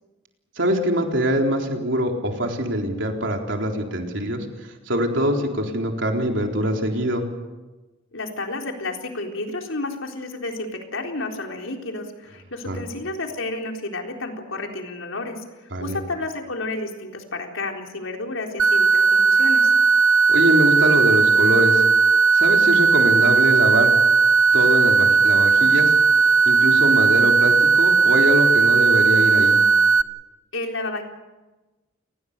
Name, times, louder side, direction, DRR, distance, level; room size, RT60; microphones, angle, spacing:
voice 1, 0.6-4.5 4.9-7.2 12.7-12.8 15.7-16.0 20.3-21.8 22.3-23.9 24.5-25.9 26.5-29.6, equal, 65° right, 2 dB, 3.8 m, -23 dB
voice 2, 8.1-15.4 15.8-19.7 30.5-31.0, left 2 dB, 85° left, 2 dB, 4.0 m, -31 dB
sound 1, 18.6-30.0, right 5 dB, 90° right, 0.9 m, -16 dB
29.5 x 20.0 x 6.8 m, 1.1 s
head